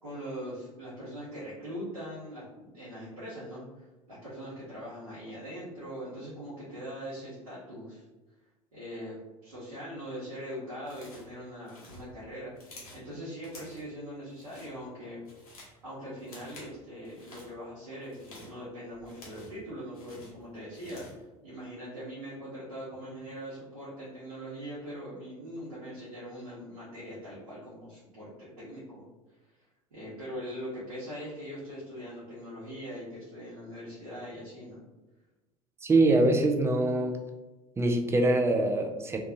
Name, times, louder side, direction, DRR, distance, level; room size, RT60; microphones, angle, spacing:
voice 1, 0.0-8.0 8.7-12.5 12.9-15.2 15.8-21.1 21.4-29.0 29.9-34.8, equal, 80° right, -11 dB, 1.0 m, -41 dB
sound 1, 10.8-11.3 11.6-13.1 13.4-13.9 14.3-14.7 15.1-15.8 16.2-16.7 17.0-17.5 18.0-19.6 19.9-21.2, left 1 dB, 75° left, 0.9 m, -51 dB
voice 2, 35.8-37.2 37.8-39.2, right 2 dB, 15° right, 4 dB, 0.4 m, -24 dB
2.6 x 2.3 x 2.6 m, 1.1 s
figure-of-eight pair, 70°, 19 cm